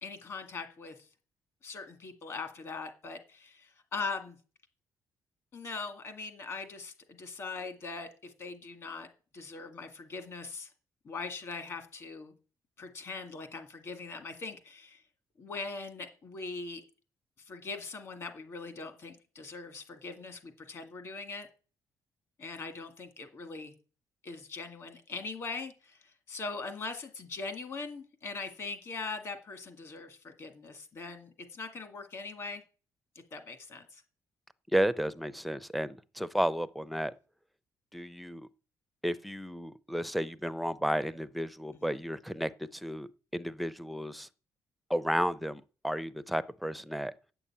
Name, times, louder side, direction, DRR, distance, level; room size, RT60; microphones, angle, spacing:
voice 1, 0.0-1.0 1.6-4.4 5.5-9.1 9.3-10.7 11.0-12.3 12.8-15.0 15.4-16.8 17.4-21.5 22.4-23.7 24.2-32.6 33.3-34.0 41.7-42.0, left 4 dB, 40° left, 1.9 m, -41 dB
voice 2, 34.7-37.1 37.9-38.5 39.0-44.3 44.9-47.1, equal, ahead, 0.5 m, -33 dB
9.6 x 6.9 x 8.5 m
cardioid pair, 180°, 7 cm